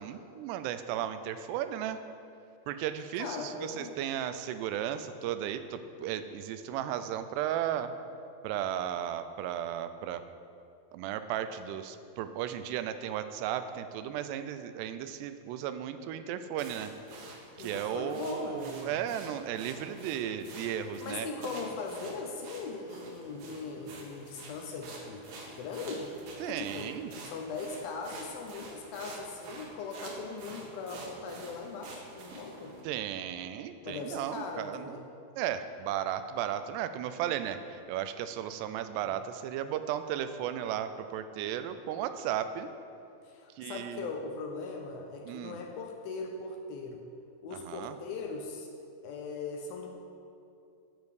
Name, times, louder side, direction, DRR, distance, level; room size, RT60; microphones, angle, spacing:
voice 1, 0.0-2.0 2.7-7.9 8.4-10.2 10.9-16.9 17.6-21.3 26.4-27.1 32.8-35.0 35.4-42.7 43.6-44.1 45.2-45.6 47.5-48.0, right 10 dB, 90° right, 10 dB, 2.7 m, -35 dB
voice 2, 3.2-4.0 17.6-19.0 21.0-26.1 26.4-26.9 27.2-32.7 33.8-35.0 43.2-47.0 47.4-48.7 49.0-49.9, left 4 dB, 75° left, 2 dB, 2.3 m, -39 dB
sound 1, 16.6-32.8, right 2 dB, 65° right, 2.7 m, -47 dB
12.0 x 7.2 x 4.8 m, 2.5 s
omnidirectional pair, 4.7 m